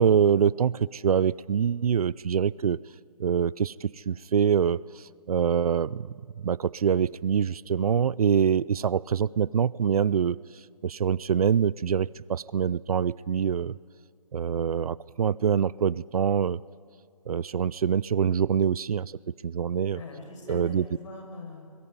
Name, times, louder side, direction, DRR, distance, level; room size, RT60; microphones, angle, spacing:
voice 1, 0.0-2.8 3.2-10.4 10.8-13.7 14.3-16.6 17.3-19.1 19.4-20.0 20.5-20.8, right 7 dB, 70° right, 22 dB, 0.5 m, -25 dB
voice 2, 19.9-21.7, left 2 dB, 55° left, 2 dB, 6.3 m, -42 dB
30.0 x 21.5 x 5.5 m, 2.3 s
hypercardioid pair, 160°, 20 cm